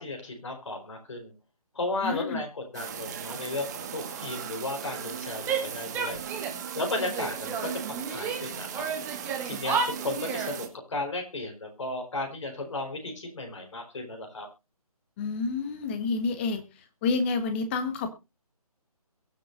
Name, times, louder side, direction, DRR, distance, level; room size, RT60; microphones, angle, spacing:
voice 1, 0.0-1.3 1.7-6.2 6.7-8.9 9.4-14.5, left 2 dB, 50° left, 3 dB, 4.5 m, -34 dB
voice 2, 2.0-2.4 15.2-16.6 17.0-18.1, left 4 dB, 20° left, 9 dB, 1.3 m, -28 dB
sound 1, 2.7-10.7, right 8 dB, 25° right, 1.8 m, -38 dB
Female speech woman speaking / Yell, 5.4-6.6 6.9-8.4 8.7-10.6, right 6 dB, 10° right, 1.6 m, -32 dB
22.5 x 7.6 x 2.6 m, 0.25 s
figure-of-eight pair, 145°, 20 cm